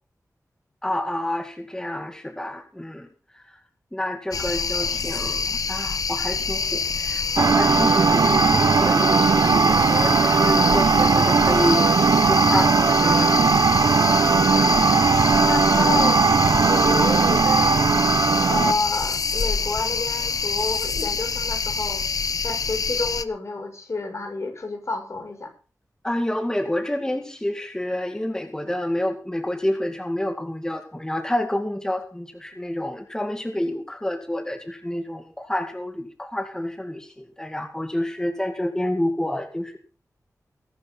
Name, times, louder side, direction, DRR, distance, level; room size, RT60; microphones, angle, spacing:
voice 1, 0.8-3.1 3.3-3.6 3.9-11.9 12.2-14.1 26.0-39.8, left 1 dB, 10° left, 7 dB, 2.2 m, -28 dB
sound 1, 4.3-23.2, left 5 dB, 70° left, 1.1 m, -26 dB
sound 2, 7.4-18.8, right 5 dB, 80° right, 1.0 m, -18 dB
voice 2, 14.5-16.3 16.6-18.1 18.5-22.1 22.4-25.5, left 3 dB, 50° left, 3 dB, 7.1 m, -30 dB
21.0 x 11.0 x 4.1 m, 0.37 s
wide cardioid pair, 120°, 6 cm